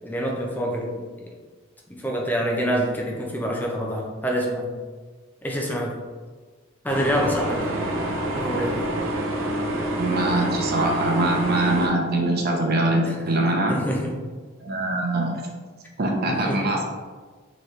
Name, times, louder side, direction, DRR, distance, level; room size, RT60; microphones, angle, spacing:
voice 1, 0.0-1.3 1.9-4.7 5.4-6.0 6.8-7.8 8.4-8.9 13.0-13.3 13.7-14.2 16.3-16.7, equal, 10° left, -1 dB, 0.5 m, -26 dB
sound 1, 6.9-11.9, right 1 dB, 90° right, 0.6 m, -27 dB
voice 2, 10.0-13.7 14.6-15.4 16.0-16.9, right 2 dB, 50° right, 1 dB, 0.7 m, -23 dB
3.9 x 3.1 x 3.2 m, 1.4 s
head